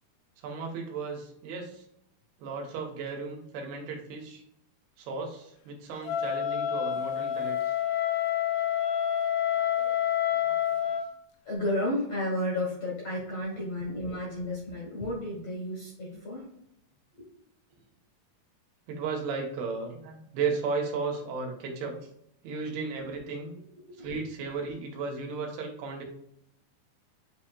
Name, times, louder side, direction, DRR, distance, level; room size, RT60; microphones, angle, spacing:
voice 1, 0.4-1.8 2.4-4.4 5.0-7.7 9.6-10.0 10.4-10.6 13.6-13.7 14.0-14.2 16.0-16.2 18.9-22.0 22.4-23.6 24.0-26.0, right 4 dB, 80° right, 2 dB, 2.8 m, -35 dB
Wind instrument woodwind instrument, 6.0-11.1, left 10 dB, 80° left, 2.2 m, -28 dB
voice 2, 11.4-16.5 17.2-17.3 23.9-24.1, left 1 dB, 65° left, -5 dB, 1.6 m, -32 dB
8.1 x 2.8 x 2.2 m, 0.74 s
omnidirectional pair, 4.4 m